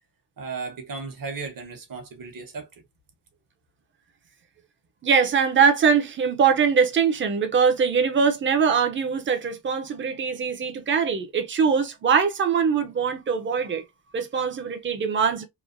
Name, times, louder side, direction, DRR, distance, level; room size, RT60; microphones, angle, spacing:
voice 1, 0.4-2.7, right 4 dB, 55° right, 0.9 m, -35 dB
voice 2, 5.0-13.8 14.1-15.4, right 6 dB, 30° right, 0.5 m, -22 dB
3.0 x 2.1 x 2.5 m
wide cardioid pair, 175°, 41 cm